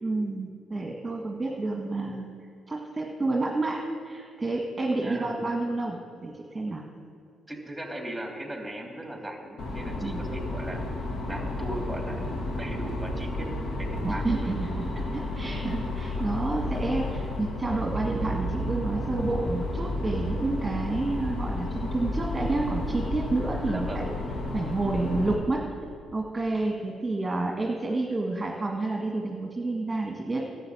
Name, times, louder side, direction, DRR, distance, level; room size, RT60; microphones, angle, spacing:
voice 1, 0.0-2.2 2.7-6.8 10.0-10.2 14.0-14.9 15.1-24.1 24.5-25.7 26.1-30.4, right 2 dB, 25° right, -1 dB, 1.7 m, -29 dB
voice 2, 7.5-10.8 11.3-14.5 23.7-24.1, right 1 dB, 5° right, 1 dB, 3.2 m, -37 dB
sound 1, 9.6-25.3, left 1 dB, 70° left, 1.9 m, -32 dB
11.5 x 7.5 x 8.8 m, 2.4 s
hypercardioid pair, 55°, 0 cm